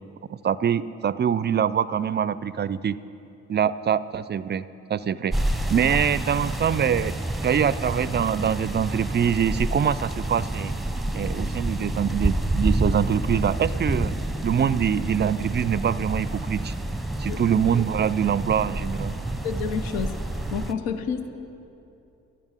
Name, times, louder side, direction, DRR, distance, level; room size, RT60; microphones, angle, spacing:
voice 1, 0.3-3.0 3.5-4.6 4.9-5.4 5.7-7.2 7.4-10.7 11.1-14.1 14.4-16.7 17.2-19.1, right 8 dB, 30° right, 17 dB, 0.4 m, -24 dB
sound 1, 5.3-20.7, right 1 dB, ahead, 0.9 m, -28 dB
voice 2, 19.4-20.1 20.5-21.5, left 6 dB, 75° left, 9 dB, 0.8 m, -29 dB
10.5 x 7.8 x 9.9 m, 2.8 s
hypercardioid pair, 40°, 36 cm